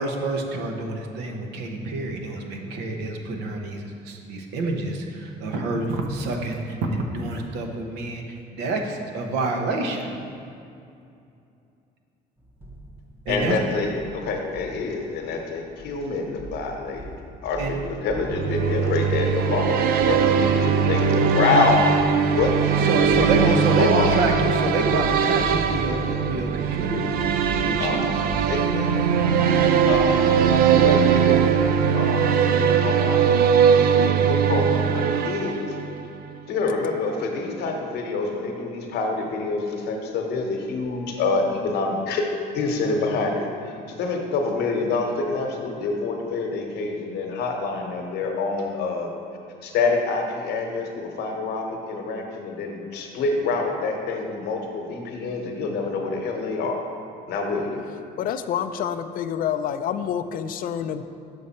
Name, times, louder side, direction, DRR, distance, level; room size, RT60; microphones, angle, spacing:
voice 1, 0.0-10.1 13.3-13.6 17.6-17.8 22.9-27.1 27.5-28.0, right 2 dB, 90° right, 3 dB, 0.8 m, -27 dB
Celtic Drum, 12.4-31.5, right 2 dB, 10° right, 0.7 m, -39 dB
voice 2, 13.3-17.0 17.4-21.8 22.2-24.1 27.8-28.0 28.5-29.0 29.9-30.2 30.7-33.2 33.9-35.7 36.5-42.3 42.5-49.1 49.6-56.8 57.3-57.8, left 3 dB, 75° left, 2 dB, 1.0 m, -27 dB
sound 1, 18.3-36.0, right 7 dB, 65° right, 0.4 m, -20 dB
voice 3, 58.2-61.0, left 9 dB, 55° left, 10 dB, 0.4 m, -27 dB
6.5 x 5.3 x 4.2 m, 2.6 s
cardioid pair, 110°, 17 cm